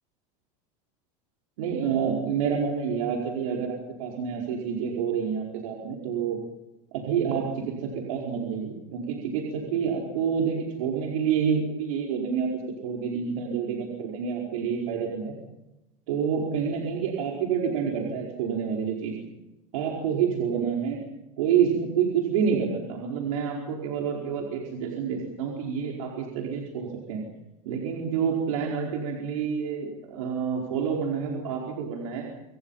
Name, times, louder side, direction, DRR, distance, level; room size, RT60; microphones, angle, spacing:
voice 1, 1.6-6.4 6.9-12.5 12.8-15.3 16.1-19.1 19.7-21.0 21.4-27.2 27.6-32.3, right 7 dB, 90° right, -1 dB, 4.9 m, -28 dB
27.0 x 25.5 x 5.7 m, 0.96 s
supercardioid pair, 165°, 17 cm